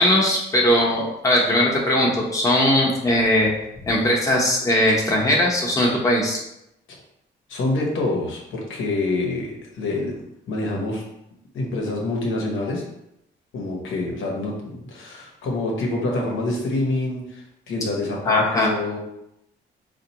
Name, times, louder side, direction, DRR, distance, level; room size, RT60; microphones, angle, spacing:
voice 1, 0.0-3.5 3.8-6.4 18.3-18.7, left 1 dB, 15° left, -3 dB, 0.8 m, -19 dB
voice 2, 7.5-10.1 10.5-11.0 11.5-12.8 13.5-19.0, left 2 dB, 80° left, -1 dB, 1.0 m, -26 dB
4.3 x 2.5 x 2.8 m, 0.84 s
cardioid pair, 90°, 20 cm